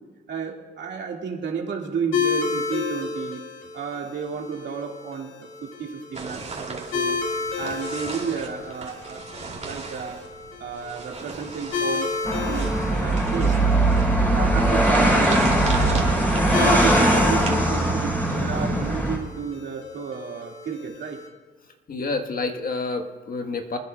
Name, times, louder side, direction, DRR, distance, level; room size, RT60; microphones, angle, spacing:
voice 1, 0.3-3.4 3.7-7.2 7.6-9.3 9.6-10.2 10.6-12.1 12.5-13.6 14.3-15.4 15.8-16.1 16.5-21.2, right 6 dB, 65° right, 0 dB, 2.2 m, -32 dB
sound 1, 2.1-21.3, left 4 dB, 80° left, 2.2 m, -32 dB
sound 2, 6.1-18.0, right 4 dB, 35° right, 2.8 m, -37 dB
sound 3, 12.2-19.2, right 1 dB, 10° left, 4.2 m, -20 dB
voice 2, 21.9-23.8, left 3 dB, 45° left, 5 dB, 1.4 m, -28 dB
26.0 x 10.0 x 2.4 m, 1.5 s
cardioid pair, 90°, 20 cm